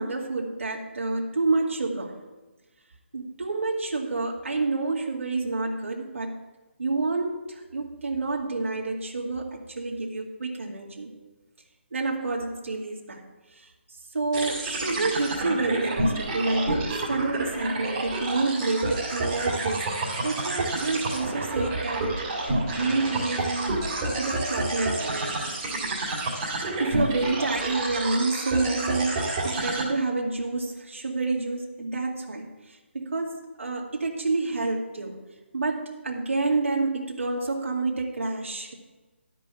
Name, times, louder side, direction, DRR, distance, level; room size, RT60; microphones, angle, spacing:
voice 1, 0.0-2.2 3.1-6.4 6.8-11.1 11.9-13.2 13.5-13.7 14.1-23.8 24.1-25.4 26.8-35.2 35.5-38.7, right 3 dB, 90° right, -1 dB, 1.9 m, -28 dB
sound 1, 14.3-29.8, right 2 dB, 15° right, 2.0 m, -29 dB
12.0 x 5.4 x 6.9 m, 1.2 s
hypercardioid pair, 175°, 7 cm